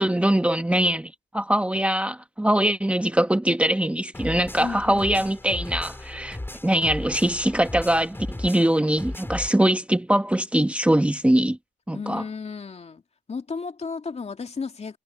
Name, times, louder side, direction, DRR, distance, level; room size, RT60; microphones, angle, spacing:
voice 1, 0.0-6.4 6.6-11.6 11.9-12.2, right 1 dB, 5° right, 1.4 m, -22 dB
sound 1, 4.1-9.5, left 1 dB, 10° left, 3.6 m, -36 dB
voice 2, 4.6-5.6 11.9-13.0 13.3-15.0, left 5 dB, 35° left, 2.7 m, -34 dB
cardioid pair, 90°, 20 cm